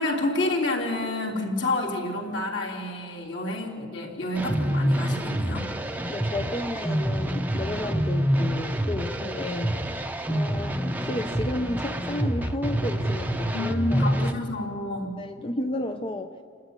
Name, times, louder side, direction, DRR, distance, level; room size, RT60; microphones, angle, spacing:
voice 1, 0.0-5.7 13.5-15.2, left 2 dB, 65° left, -1 dB, 3.4 m, -29 dB
sound 1, 4.4-14.3, equal, 10° right, 0.7 m, -27 dB
voice 2, 6.1-9.8 10.3-14.3 15.2-16.4, left 1 dB, 25° left, 6 dB, 0.6 m, -32 dB
28.0 x 12.5 x 9.7 m, 2.3 s
head